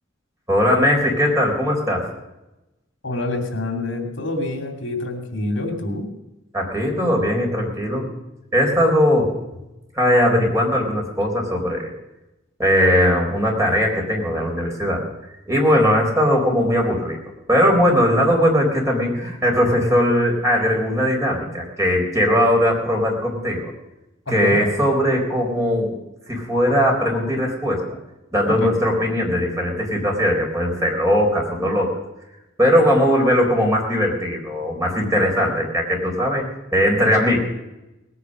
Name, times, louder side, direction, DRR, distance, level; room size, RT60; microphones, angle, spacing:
voice 1, 0.5-2.1 6.5-8.1 8.5-9.4 9.9-11.9 12.6-15.0 15.5-17.2 17.5-23.7 24.3-25.9 26.3-27.8 28.3-31.9 32.6-36.4 36.7-37.4, equal, 15° right, 0 dB, 3.9 m, -19 dB
voice 2, 3.0-6.1 24.3-24.6 28.6-28.8, left 2 dB, 70° left, 4 dB, 2.6 m, -26 dB
19.5 x 9.8 x 6.5 m, 0.97 s
head